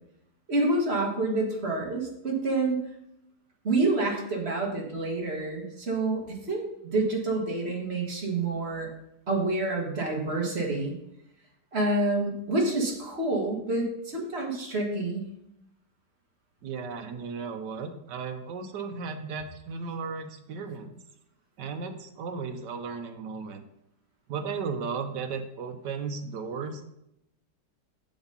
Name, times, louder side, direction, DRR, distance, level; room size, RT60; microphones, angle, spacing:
voice 1, 0.5-2.8 3.6-8.9 9.3-11.0 11.7-15.3, right 2 dB, 35° right, -1 dB, 1.8 m, -28 dB
voice 2, 16.6-21.0 21.6-23.6 24.3-26.8, right 5 dB, 75° right, 6 dB, 1.4 m, -35 dB
7.2 x 7.1 x 4.1 m, 0.81 s
omnidirectional pair, 1.9 m